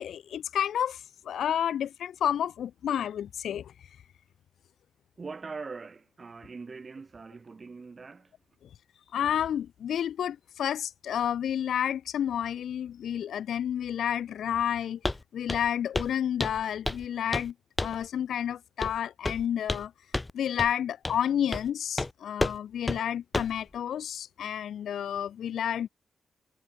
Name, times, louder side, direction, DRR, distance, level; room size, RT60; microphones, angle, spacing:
voice 1, 0.0-3.7 9.1-15.0 15.3-17.5 17.8-19.9 20.3-25.9, left 9 dB, 85° left, 1.3 m, -30 dB
voice 2, 5.2-8.3, right 4 dB, 30° right, 3.8 m, -42 dB
Walk footsteps, 15.0-15.2 15.5-15.7 15.9-16.1 16.4-17.1 17.3-17.5 17.8-18.0 18.8-19.0 19.2-19.9 20.1-20.3 20.6-20.7 21.0-21.2 21.5-21.7 22.0-22.1 22.4-22.6 22.9-23.0 23.3-23.6, left 2 dB, 15° left, 1.4 m, -30 dB
wide cardioid pair, 140°, 0 cm